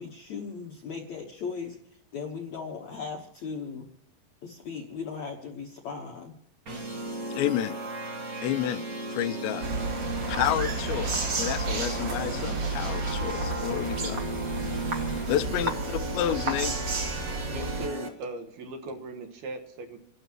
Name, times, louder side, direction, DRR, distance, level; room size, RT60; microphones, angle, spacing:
voice 1, 0.0-1.8 2.1-3.9 4.4-6.3, left 5 dB, 70° left, 0 dB, 1.8 m, -37 dB
sound 1, 6.7-18.1, right 2 dB, 85° right, 0.8 m, -36 dB
voice 2, 7.3-7.7 8.4-8.8 9.1-9.7 10.3-14.2 15.3-17.1, left 12 dB, 85° left, 11 dB, 2.9 m, -30 dB
sound 2, 9.6-17.9, right 3 dB, 45° right, 2.5 m, -31 dB
voice 3, 17.5-20.0, right 2 dB, 65° right, 3 dB, 3.2 m, -38 dB
29.0 x 12.0 x 3.0 m, 0.77 s
omnidirectional pair, 5.0 m